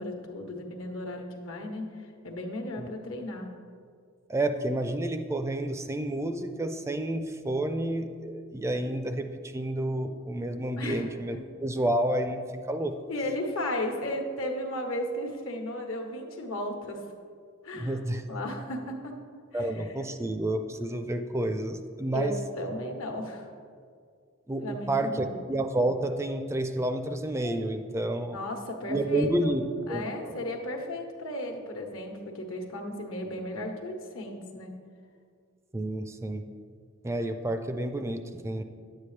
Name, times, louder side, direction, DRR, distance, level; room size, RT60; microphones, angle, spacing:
voice 1, 0.0-3.5 10.8-11.4 13.1-17.0 17.6-18.0 18.3-19.1 19.5-19.9 22.1-23.5 24.6-25.4 28.3-29.5 29.9-34.7, left 1 dB, 80° left, 3 dB, 1.2 m, -35 dB
voice 2, 4.3-9.3 9.5-12.4 12.7-12.9 17.7-18.2 19.5-22.3 24.5-28.4 28.9-29.6 29.9-30.3 35.7-36.4 37.0-38.6, right 1 dB, 15° right, 7 dB, 0.4 m, -30 dB
10.0 x 8.4 x 3.2 m, 2.1 s
head